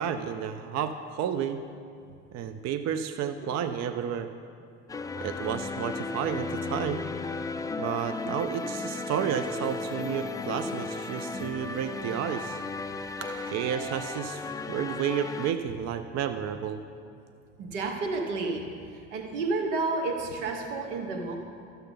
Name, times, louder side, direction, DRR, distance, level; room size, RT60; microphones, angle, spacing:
voice 1, 0.0-1.6 2.3-4.3 5.2-7.0 7.8-12.6 13.5-16.8, right 8 dB, 50° right, 10 dB, 0.5 m, -31 dB
sound 1, 4.9-15.5, left 3 dB, 10° left, 0.3 m, -35 dB
voice 2, 13.2-13.5 17.6-18.7 19.1-21.4, right 3 dB, 85° right, 4 dB, 1.1 m, -31 dB
13.0 x 6.9 x 3.9 m, 2.4 s
hypercardioid pair, 70°, 36 cm